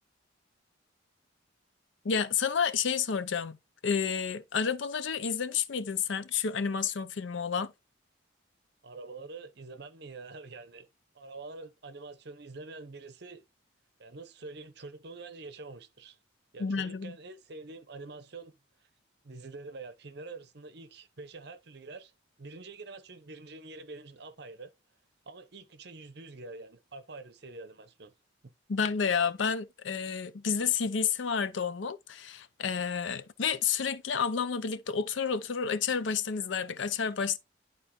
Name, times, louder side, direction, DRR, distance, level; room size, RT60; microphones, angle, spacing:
voice 1, 2.0-3.6 3.8-7.7 16.6-17.2 28.7-37.4, left 6 dB, 75° left, 0.6 m, -30 dB
voice 2, 8.8-10.9 11.1-13.4 14.0-16.2 16.5-18.5 19.2-22.1 22.4-24.7 25.3-28.1, right 3 dB, 55° right, 0.8 m, -46 dB
11.0 x 3.9 x 3.0 m
head